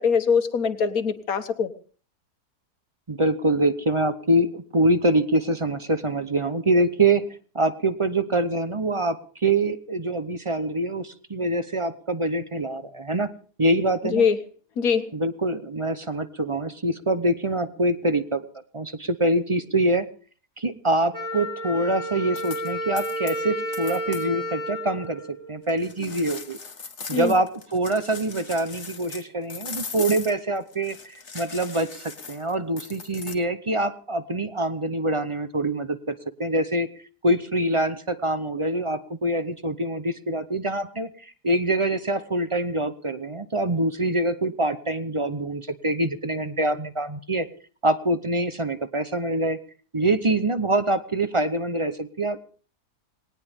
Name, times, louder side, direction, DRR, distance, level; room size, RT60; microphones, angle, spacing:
voice 1, 0.0-1.7 14.0-14.4 14.8-15.1 26.0-26.1 27.1-27.3, left 6 dB, 65° left, 9 dB, 1.7 m, -23 dB
voice 2, 3.1-13.3 13.6-14.2 15.1-18.4 18.7-20.1 20.6-26.6 27.1-36.9 37.2-47.5 47.8-49.6 49.9-52.4, right 1 dB, 30° right, 11 dB, 0.6 m, -25 dB
Wind instrument woodwind instrument, 21.1-25.9, equal, 85° right, 7.3 m, -32 dB
sound 1, 22.4-22.7 23.0-23.4 23.7-24.3 25.7-29.2 29.5-33.3, left 5 dB, 45° left, 1.8 m, -39 dB
20.0 x 18.5 x 3.6 m, 0.43 s
omnidirectional pair, 1.7 m